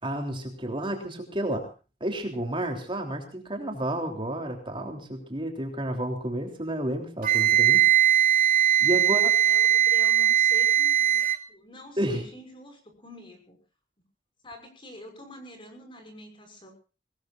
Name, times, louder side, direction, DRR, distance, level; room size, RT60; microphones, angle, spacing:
voice 1, 0.0-1.7 2.0-8.1 8.8-9.3 12.0-12.3, right 1 dB, 30° right, 3 dB, 3.4 m, -31 dB
Wind instrument woodwind instrument, 7.2-11.4, right 10 dB, 50° right, 2.4 m, -20 dB
voice 2, 9.0-11.2 11.5-13.6 14.4-16.7, left 1 dB, 30° left, 5 dB, 5.9 m, -46 dB
24.5 x 19.5 x 2.5 m, 0.35 s
head